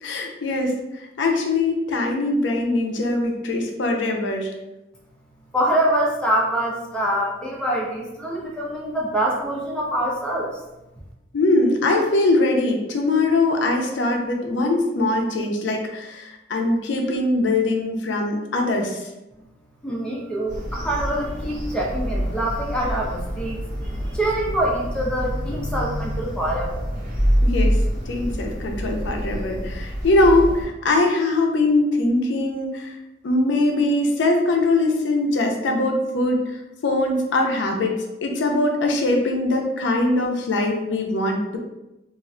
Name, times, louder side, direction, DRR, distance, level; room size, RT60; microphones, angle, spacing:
voice 1, 0.0-4.5 11.3-19.1 27.4-27.8 28.1-33.0 33.2-37.9 38.2-41.6, left 2 dB, 75° left, 2 dB, 0.5 m, -22 dB
voice 2, 5.5-10.5 19.8-26.9, right 1 dB, 5° left, -3 dB, 0.5 m, -25 dB
sound 1, 20.5-30.6, equal, 50° right, 1.2 m, -26 dB
2.4 x 2.1 x 3.6 m, 0.98 s
head